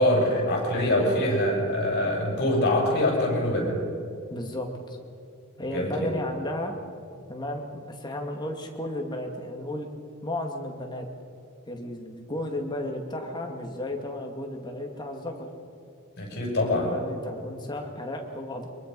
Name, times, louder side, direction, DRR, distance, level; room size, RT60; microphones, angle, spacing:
voice 1, 0.0-3.8 5.7-6.1 16.2-17.0, left 1 dB, 50° left, -1 dB, 6.9 m, -24 dB
voice 2, 4.3-5.0 5.6-6.8 7.3-9.9 10.2-11.1 11.7-15.5 16.3-18.7, left 1 dB, 20° left, 2 dB, 2.2 m, -34 dB
24.0 x 22.5 x 5.5 m, 2.5 s
head